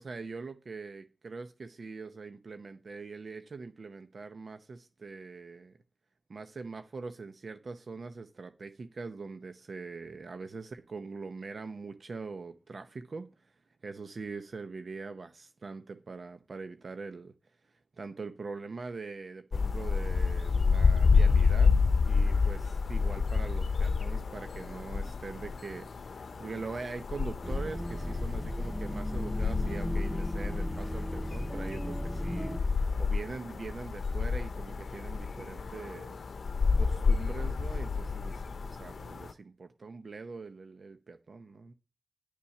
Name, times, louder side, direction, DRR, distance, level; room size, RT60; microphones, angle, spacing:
voice 1, 0.0-5.8 6.3-13.5 13.8-17.3 17.6-32.5 33.0-36.2 36.7-41.7, right 4 dB, 75° right, 0.8 m, -43 dB
sound 1, 19.5-39.3, left 4 dB, 90° left, 0.6 m, -29 dB
sound 2, 27.4-32.6, left 1 dB, 15° left, 2.2 m, -35 dB
10.0 x 7.1 x 5.8 m
cardioid pair, 50°, 0 cm